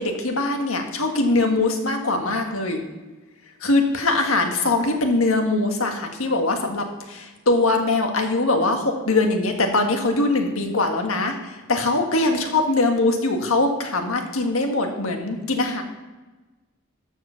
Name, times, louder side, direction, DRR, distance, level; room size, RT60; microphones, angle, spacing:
voice 1, 0.0-2.8 3.6-15.8, left 2 dB, 75° left, 3 dB, 1.7 m, -22 dB
12.5 x 4.8 x 7.0 m, 1.2 s
head